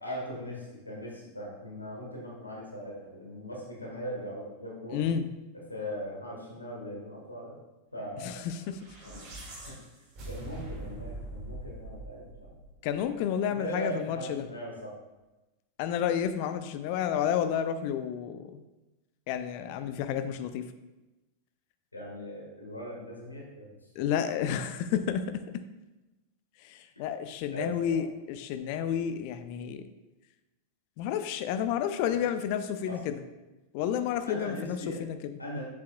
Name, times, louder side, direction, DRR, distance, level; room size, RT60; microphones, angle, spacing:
voice 1, 0.0-5.0 5.7-7.5 7.9-8.4 9.0-9.3 9.6-9.7 10.2-12.5 13.6-14.9 21.9-23.7 27.5-28.0 32.9-33.0 34.3-35.0 35.4-35.6, equal, 80° left, -2 dB, 1.5 m, -39 dB
voice 2, 4.9-5.3 8.2-8.6 12.8-14.5 15.8-18.6 19.3-20.7 24.0-25.2 26.6-29.8 31.0-33.2 33.7-35.4, left 9 dB, 45° left, 10 dB, 0.5 m, -31 dB
sound 1, 8.6-13.0, right 2 dB, 40° right, 2.0 m, -43 dB
7.6 x 7.0 x 2.2 m, 1.1 s
figure-of-eight pair, 90°, 0 cm